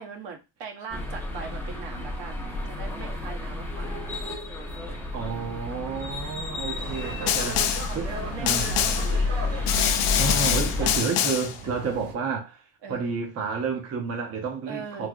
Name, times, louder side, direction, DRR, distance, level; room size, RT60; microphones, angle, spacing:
voice 1, 0.0-4.0 5.6-7.0 7.5-9.3 10.8-11.0 12.8-13.1 14.7-15.1, right 5 dB, 60° right, 0.9 m, -41 dB
sound 1, 0.9-11.0, left 2 dB, 5° left, 0.6 m, -31 dB
voice 2, 5.1-7.7 7.9-8.1 8.4-8.9 10.2-12.6 12.9-15.1, right 5 dB, 30° right, 0.7 m, -30 dB
sound 2, 6.8-12.1, right 2 dB, 75° right, 1.7 m, -39 dB
Snare drum, 7.3-8.0 8.5-9.2 9.7-11.6, left 9 dB, 85° left, 0.6 m, -25 dB
3.2 x 2.9 x 2.3 m
cardioid pair, 135°, 48 cm